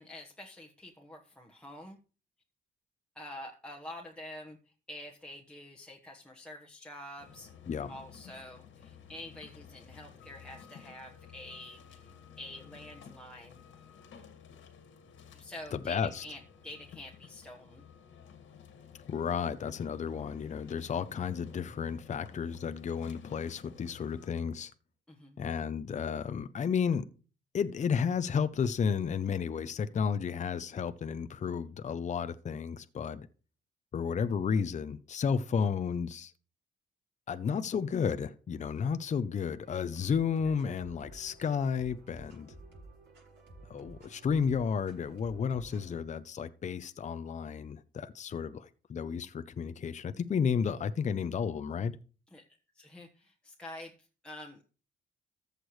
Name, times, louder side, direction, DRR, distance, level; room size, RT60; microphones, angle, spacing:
voice 1, 0.0-2.0 3.1-4.6 4.9-7.5 7.9-13.6 15.3-17.8 25.1-25.4 52.3-52.4 52.7-53.9 54.2-54.6, left 1 dB, 5° left, 1.2 m, -47 dB
sound 1, 7.2-24.3, left 7 dB, 75° left, 2.0 m, -53 dB
voice 2, 15.7-16.2 19.1-24.7 25.4-27.0 27.5-33.3 33.9-36.3 37.3-42.5 43.7-51.9, left 6 dB, 35° left, 0.6 m, -32 dB
sound 2, 39.6-46.0, right 2 dB, 65° right, 6.3 m, -53 dB
14.0 x 6.6 x 3.2 m
cardioid pair, 90°, 20 cm